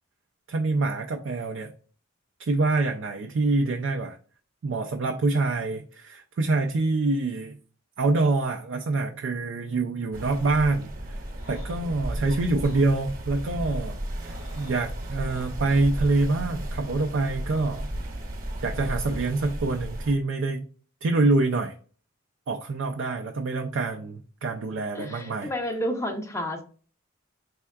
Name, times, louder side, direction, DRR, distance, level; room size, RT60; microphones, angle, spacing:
voice 1, 0.5-1.7 2.5-4.2 4.6-7.6 8.0-11.2 11.5-17.9 18.6-20.6 21.0-21.7 22.5-25.5, right 3 dB, 60° right, 3 dB, 0.4 m, -26 dB
sound 1, 10.1-20.1, right 1 dB, 40° right, 0.9 m, -34 dB
sound 2, 11.2-11.8 12.6-12.8 14.0-14.9 15.7-15.9, left 2 dB, 80° left, 1.6 m, -51 dB
voice 2, 24.9-26.6, equal, 15° left, 4 dB, 0.5 m, -30 dB
4.5 x 3.5 x 2.2 m, 0.41 s
head